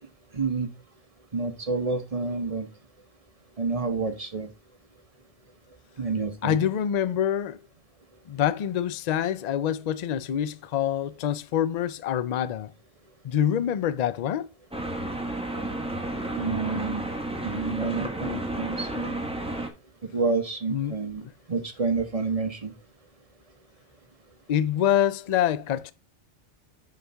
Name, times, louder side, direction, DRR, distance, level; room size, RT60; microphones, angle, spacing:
voice 1, 0.3-0.7 1.3-2.7 3.6-4.5 6.0-6.6 16.3-17.1 17.4-19.1 20.1-21.2 21.5-22.7, right 4 dB, 35° right, 0.9 m, -29 dB
voice 2, 6.4-7.6 8.3-12.7 13.2-14.5 20.7-20.9 21.2-21.3 24.5-25.9, left 10 dB, 55° left, 0.4 m, -26 dB
sound 1, 14.7-19.7, right 1 dB, 5° right, 1.0 m, -32 dB
9.6 x 4.2 x 3.4 m
omnidirectional pair, 1.2 m